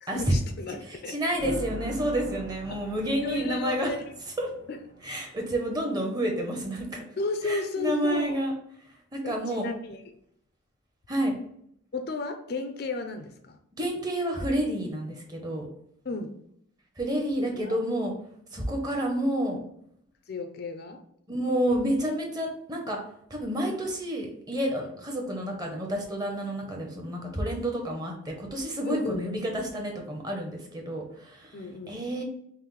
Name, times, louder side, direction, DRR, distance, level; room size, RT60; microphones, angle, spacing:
voice 1, 0.0-1.1 2.7-2.8 3.1-4.1 4.7-4.8 7.2-8.4 9.2-10.0 11.9-13.6 16.0-16.3 17.5-17.8 20.3-21.0 28.8-29.2 31.5-32.0, left 3 dB, 50° left, 7 dB, 0.4 m, -33 dB
voice 2, 0.9-3.9 4.4-4.5 5.0-7.0 7.4-8.5 8.8-9.7 11.1-11.3 13.8-15.7 17.0-18.1 18.5-19.6 21.3-23.0 23.3-31.6 31.9-32.2, right 1 dB, 20° right, 1 dB, 0.7 m, -29 dB
sound 1, 1.4-5.5, right 1 dB, 75° right, 1.0 m, -42 dB
5.6 x 2.0 x 3.1 m, 0.70 s
head